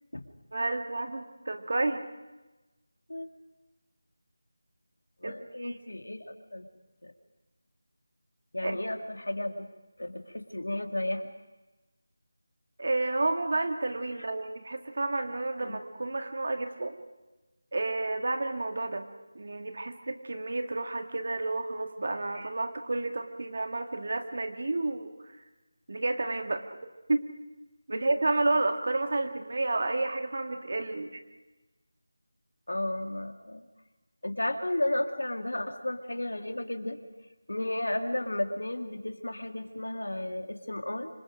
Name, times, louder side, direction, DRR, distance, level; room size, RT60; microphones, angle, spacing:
voice 1, 0.5-2.0 5.2-5.8 8.6-8.8 12.8-17.0 17.7-19.1 19.3-25.1 25.9-26.7 27.1-27.3 27.9-31.2, right 2 dB, 60° right, 6 dB, 2.1 m, -30 dB
voice 2, 5.2-6.6 7.0-7.1 8.5-9.5 10.0-11.2 15.6-15.8 32.7-33.6 34.2-37.0 37.5-41.1, left 1 dB, 85° left, 5 dB, 2.5 m, -33 dB
27.0 x 25.5 x 5.2 m, 1.1 s
figure-of-eight pair, 165°, 0 cm